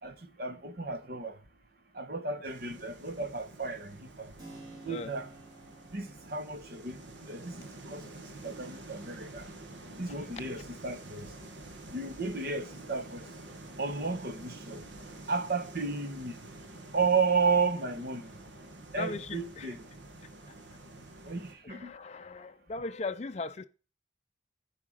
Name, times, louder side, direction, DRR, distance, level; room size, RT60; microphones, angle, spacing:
voice 1, 0.0-1.4 1.9-4.3 4.8-5.3 5.9-7.0 7.3-8.1 8.4-9.5 10.0-11.3 11.9-13.3 13.8-14.8 15.3-16.3 16.9-18.3 18.9-19.8 21.2-21.9, right 4 dB, 50° right, 1.2 m, -33 dB
sound 1, 2.4-21.5, right 2 dB, 70° right, 1.7 m, -48 dB
Keyboard (musical), 4.4-12.9, right 2 dB, 20° right, 3.0 m, -56 dB
voice 2, 19.0-19.7 21.6-23.7, left 3 dB, 35° left, 0.4 m, -38 dB
11.0 x 4.9 x 5.0 m
head